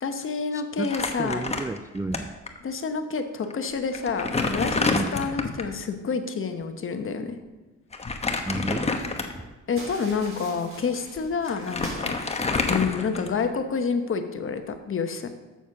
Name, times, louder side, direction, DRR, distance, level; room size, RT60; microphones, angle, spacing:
voice 1, 0.0-1.4 2.6-7.4 9.7-12.2 12.7-15.3, left 5 dB, 45° left, 7 dB, 1.1 m, -28 dB
voice 2, 0.5-2.3 4.9-5.1 8.4-8.9, right 2 dB, 10° right, 7 dB, 0.3 m, -32 dB
Crumpling crinkling, 0.8-2.2 2.5-2.6 3.4-3.5 3.9-5.7 7.9-9.5 10.1-10.3 11.2-11.3 11.5-13.6, left 3 dB, 20° left, 1.0 m, -28 dB
sound 1, 9.7-13.1, right 1 dB, 45° right, 3.5 m, -44 dB
7.2 x 7.0 x 6.0 m, 1.2 s
cardioid pair, 90°, 30 cm